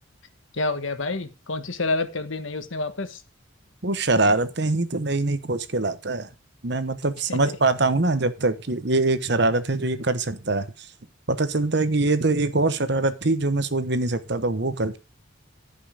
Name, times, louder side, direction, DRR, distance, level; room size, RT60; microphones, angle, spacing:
voice 1, 0.5-3.2 7.3-7.6, left 3 dB, 75° left, 1.4 m, -28 dB
voice 2, 3.8-6.3 6.6-10.7 11.3-15.0, right 2 dB, 55° right, 1.1 m, -23 dB
14.5 x 5.6 x 5.0 m
head